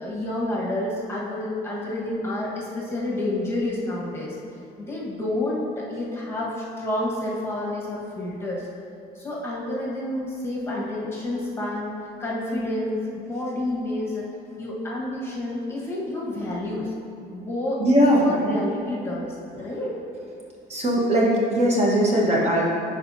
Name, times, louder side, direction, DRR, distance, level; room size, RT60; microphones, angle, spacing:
voice 1, 0.0-4.4 4.8-8.7 9.1-14.3 14.6-16.9 17.3-19.9, left 1 dB, 15° left, -5 dB, 1.3 m, -29 dB
voice 2, 17.8-18.6 20.7-22.7, equal, 40° right, -4 dB, 1.2 m, -20 dB
10.0 x 4.2 x 2.7 m, 2.6 s
cardioid pair, 110°, 17 cm